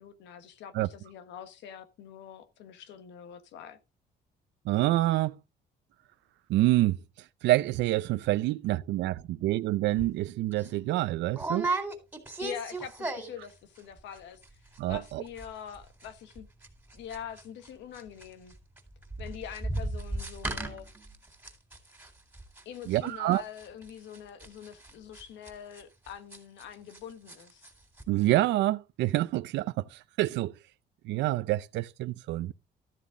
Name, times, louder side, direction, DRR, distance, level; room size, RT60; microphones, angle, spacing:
voice 1, 0.0-3.8 12.4-14.4 14.9-16.5 16.9-18.5 19.2-20.9 22.6-27.7, left 9 dB, 90° left, 1.5 m, -44 dB
voice 2, 4.7-5.3 6.5-7.0 7.4-11.7 14.8-15.2 22.9-23.4 28.1-30.5 31.1-32.5, right 16 dB, 90° right, 0.5 m, -27 dB
sound 1, 10.0-10.1 10.5-10.7 11.3-13.5 13.8-14.2 14.4-14.5 14.7-15.1 15.4-27.0 27.3-27.7 28.0-28.1, right 2 dB, 10° right, 3.8 m, -36 dB
13.5 x 7.2 x 3.8 m
cardioid pair, 105°, 18 cm